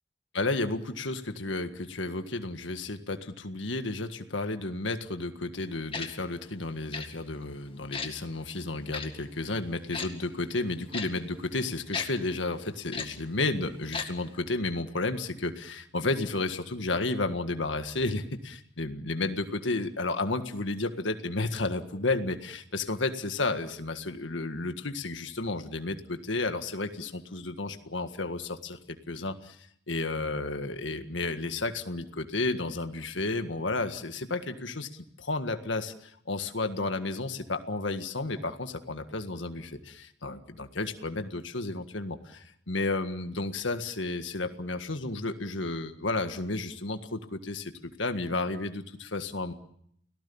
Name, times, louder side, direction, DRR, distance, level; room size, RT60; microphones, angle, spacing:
voice 1, 0.3-49.5, left 2 dB, 80° left, 8 dB, 1.7 m, -32 dB
Tick-tock, 5.9-6.1 6.9-7.1 7.9-8.1 8.9-9.1 9.9-10.1 10.9-11.1 11.9-12.1 12.9-13.1 13.9-14.1 14.3-14.4, left 5 dB, 30° left, 2.0 m, -34 dB
30.0 x 18.5 x 7.1 m, 0.71 s
head